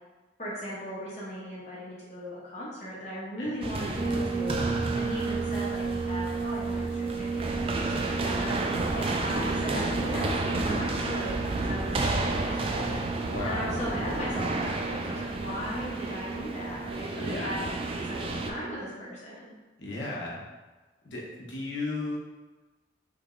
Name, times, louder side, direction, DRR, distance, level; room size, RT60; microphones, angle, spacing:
voice 1, 0.4-4.6 4.9-8.6 8.9-13.0 13.4-17.7 18.1-19.5, equal, 35° left, -7 dB, 0.8 m, -37 dB
sound 1, 3.6-18.5, right 2 dB, 30° right, 0.3 m, -32 dB
sound 2, 3.9-18.7, right 4 dB, 50° right, 1.0 m, -34 dB
voice 2, 13.3-13.9 17.2-17.6 19.8-20.4 21.0-22.2, left 2 dB, 70° left, -3 dB, 1.0 m, -34 dB
4.8 x 3.3 x 2.5 m, 1.3 s
head